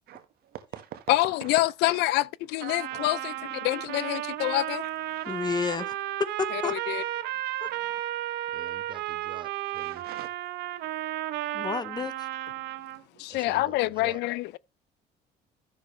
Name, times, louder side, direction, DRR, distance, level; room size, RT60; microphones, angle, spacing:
voice 1, 0.1-2.0 2.9-3.2 3.8-4.1 4.8-5.3 7.2-7.3 9.7-10.3 10.6-11.0 12.0-12.1 13.1-13.2, right 11 dB, 65° right, 1.6 m, -45 dB
voice 2, 1.1-3.3 3.6-4.8 6.5-7.0 13.2-14.6, left 18 dB, 85° left, 0.4 m, -26 dB
Trumpet, 2.6-13.0, right 14 dB, 85° right, 0.8 m, -33 dB
voice 3, 5.3-6.7 7.6-7.7 11.5-12.3, left 5 dB, 25° left, 0.9 m, -31 dB
voice 4, 8.5-10.1 13.3-14.2, right 6 dB, 30° right, 0.9 m, -46 dB
12.5 x 6.8 x 3.2 m
cardioid pair, 110°, 17 cm